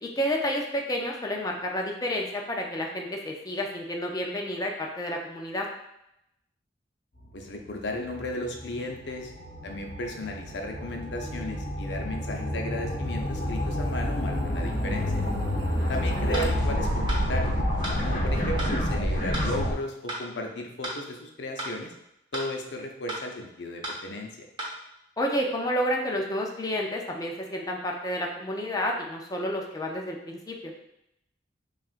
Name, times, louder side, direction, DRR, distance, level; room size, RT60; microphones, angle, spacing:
voice 1, 0.0-5.7 15.7-15.9 16.3-16.5 25.2-30.7, equal, 20° left, 0 dB, 0.5 m, -30 dB
sound 1, 7.2-19.7, left 1 dB, 45° left, 1.1 m, -29 dB
voice 2, 7.3-9.3 9.6-15.1 15.9-17.5 18.0-21.9 22.3-24.5, left 1 dB, 65° left, 2 dB, 0.6 m, -35 dB
sound 2, 14.6-19.7, right 1 dB, 80° right, 0.5 m, -32 dB
sound 3, 16.3-16.5 17.1-17.2 17.8-18.0 18.6-18.7 19.3-19.5 20.1-20.2 20.8-21.0 21.6-21.7 22.3-22.5 23.1-23.2 23.8-24.0 24.6-24.7, right 1 dB, 25° right, 0.8 m, -34 dB
5.8 x 2.4 x 2.4 m, 0.82 s
head